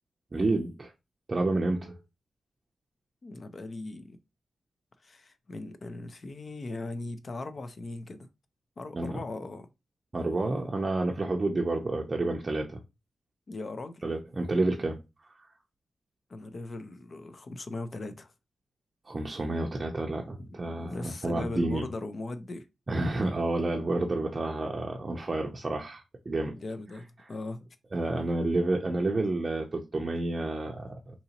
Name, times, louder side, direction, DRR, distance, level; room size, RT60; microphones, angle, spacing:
voice 1, 0.3-0.9 1.3-2.0 8.9-9.2 10.1-12.8 14.0-15.5 19.1-21.9 22.9-26.6 27.9-31.2, right 2 dB, 35° right, 0.5 m, -30 dB
voice 2, 3.2-4.2 5.0-8.3 8.8-9.7 13.5-14.0 16.3-18.3 20.4-22.7 26.5-27.7, left 2 dB, 45° left, 0.5 m, -39 dB
3.9 x 2.9 x 2.8 m
wide cardioid pair, 105°, 0 cm